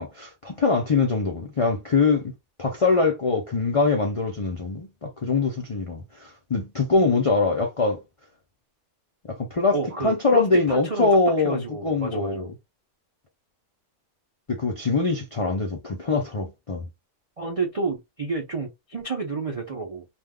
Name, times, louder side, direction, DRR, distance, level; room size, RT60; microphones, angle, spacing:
voice 1, 0.0-2.3 2.6-8.0 9.2-9.8 10.0-12.5 14.5-16.9, left 3 dB, 60° left, 0.3 m, -23 dB
voice 2, 9.7-12.5 17.4-20.1, right 4 dB, 65° right, 0.3 m, -30 dB
2.5 x 2.2 x 3.5 m
omnidirectional pair, 1.6 m